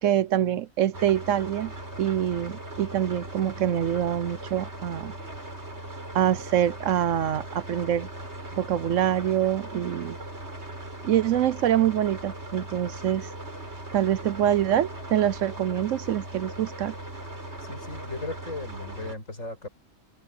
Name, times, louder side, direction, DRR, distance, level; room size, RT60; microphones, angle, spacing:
voice 1, 0.0-1.7 2.0-5.1 6.1-8.1 8.6-10.2 11.0-13.3 13.9-16.9, right 10 dB, 70° right, 1.0 m, -25 dB
sound 1, 0.9-19.1, right 1 dB, 50° right, 5.7 m, -39 dB
voice 2, 17.7-19.7, left 2 dB, 70° left, 6.8 m, -36 dB
omnidirectional pair, 1.4 m